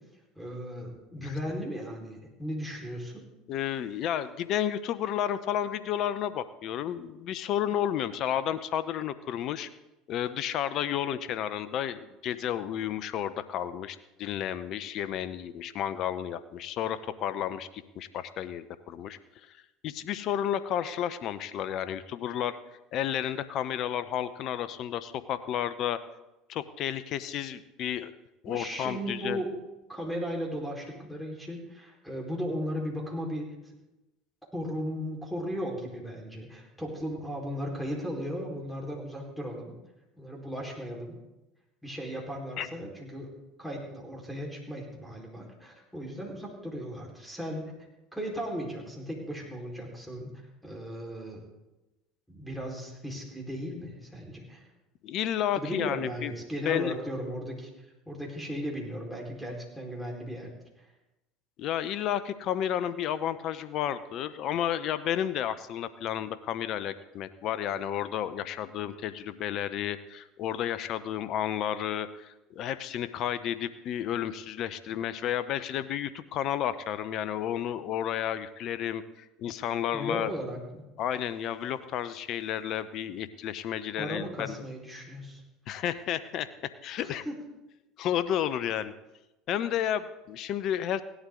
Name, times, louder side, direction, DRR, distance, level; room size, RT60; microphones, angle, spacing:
voice 1, 0.4-3.2 28.4-29.6 29.9-33.5 34.5-39.8 40.2-41.2 41.8-43.3 43.6-47.7 48.1-50.3 50.6-51.4 52.3-54.7 55.5-57.7 58.1-60.5 60.8-60.9 79.9-80.8 84.0-85.4 87.0-87.3, equal, ahead, 0 dB, 4.5 m, -36 dB
voice 2, 3.5-9.7 10.1-19.2 19.8-22.6 22.9-26.0 26.5-28.1 28.4-29.4 42.6-42.7 55.0-56.3 56.7-57.0 61.6-80.3 81.0-84.5 85.7-87.2 88.0-88.9 89.5-91.0, left 10 dB, 55° left, 14 dB, 0.7 m, -32 dB
16.5 x 11.5 x 3.8 m, 0.98 s
hypercardioid pair, 75°, 0 cm